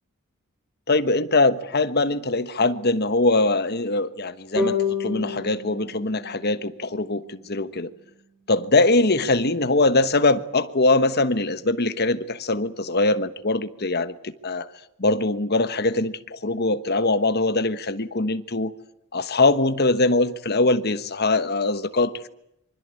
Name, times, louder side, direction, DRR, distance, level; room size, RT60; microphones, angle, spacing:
voice 1, 0.9-7.9 8.5-14.7 15.0-18.7 19.1-22.3, left 2 dB, 50° left, 1.3 m, -22 dB
sound 1, 4.6-7.8, left 4 dB, 5° right, 6.6 m, -30 dB
25.5 x 24.5 x 8.4 m
head